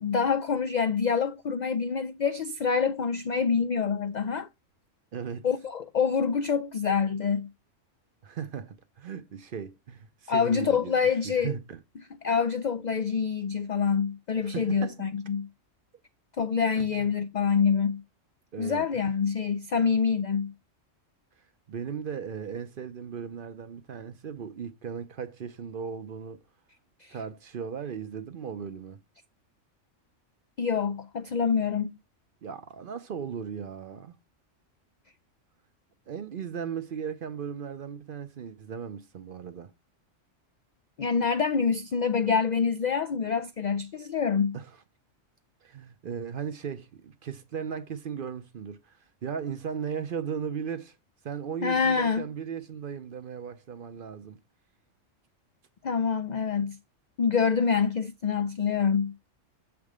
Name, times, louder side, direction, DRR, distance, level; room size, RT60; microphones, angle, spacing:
voice 1, 0.0-4.5 5.4-7.5 10.3-11.6 12.2-15.5 16.4-18.0 18.6-20.5 27.0-27.2 30.6-32.0 41.0-44.6 51.6-52.3 55.8-56.8 57.2-59.1, left 6 dB, 70° left, 0.4 m, -26 dB
voice 2, 5.1-5.5 8.2-10.9 11.2-11.8 14.4-15.1 16.8-17.1 18.5-19.1 21.4-26.4 27.1-29.0 32.4-34.2 36.1-39.7 44.5-44.7 45.6-51.0 51.2-54.4, right 7 dB, 55° right, 0.7 m, -37 dB
7.4 x 3.6 x 4.7 m
omnidirectional pair, 1.3 m